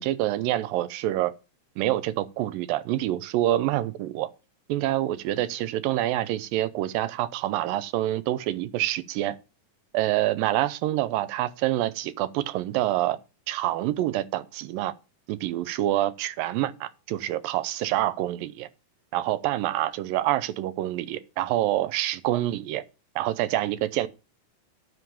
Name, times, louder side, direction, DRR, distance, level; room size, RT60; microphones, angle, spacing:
voice 1, 0.0-1.3 1.8-4.3 4.7-9.4 9.9-13.2 13.5-14.9 15.3-18.7 19.1-22.8 23.2-24.1, right 14 dB, 85° right, 2.5 m, -26 dB
9.7 x 6.0 x 7.0 m
omnidirectional pair, 3.9 m